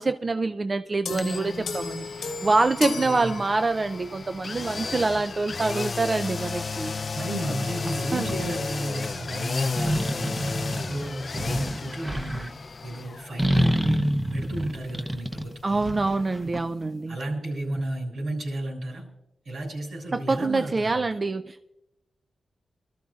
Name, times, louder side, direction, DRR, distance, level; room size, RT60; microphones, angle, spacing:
voice 1, 0.0-7.0 8.1-8.3 15.6-17.2 20.1-21.7, right 3 dB, 35° right, 9 dB, 0.4 m, -26 dB
sound 1, 1.0-4.0, left 4 dB, 90° left, 1.1 m, -34 dB
sound 2, 1.1-16.9 17.2-17.3, left 4 dB, 45° left, 0.4 m, -34 dB
voice 2, 2.9-3.4 7.1-10.6 10.9-12.5 12.8-15.8 16.4-16.5 17.1-19.0 19.4-21.2, right 1 dB, 80° right, 0 dB, 6.7 m, -33 dB
sound 3, 7.8-8.5 9.7-12.5 13.4-16.6, equal, 15° right, 0.8 m, -27 dB
26.0 x 13.0 x 2.4 m, 0.88 s
wide cardioid pair, 105°, 0 cm